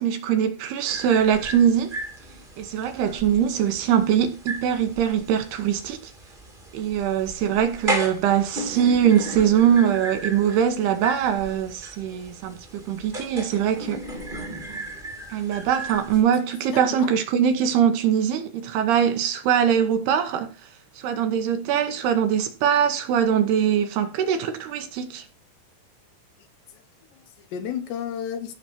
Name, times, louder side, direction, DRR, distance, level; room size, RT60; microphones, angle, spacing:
voice 1, 0.0-2.0 2.6-6.0 6.7-14.0 15.3-20.5 21.0-25.2, right 8 dB, 70° right, 2.9 m, -22 dB
sound 1, 0.9-16.2, right 1 dB, 20° right, 1.5 m, -35 dB
voice 2, 16.7-17.2 26.7-26.8 27.1-28.5, left 8 dB, 75° left, 3.3 m, -33 dB
15.0 x 6.0 x 4.3 m
omnidirectional pair, 5.2 m